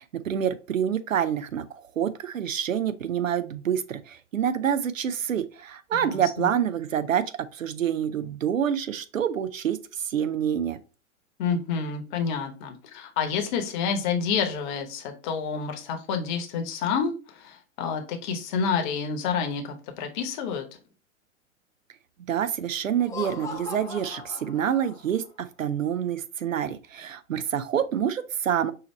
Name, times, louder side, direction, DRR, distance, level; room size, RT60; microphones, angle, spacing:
voice 1, 0.0-10.8 22.3-28.7, right 9 dB, 75° right, 12 dB, 0.6 m, -27 dB
voice 2, 6.0-6.5 11.4-20.6, left 6 dB, 35° left, 5 dB, 1.0 m, -29 dB
Laughter, 22.9-25.3, left 4 dB, 10° left, 0.8 m, -39 dB
5.6 x 2.7 x 3.1 m, 0.34 s
figure-of-eight pair, 100°, 40 cm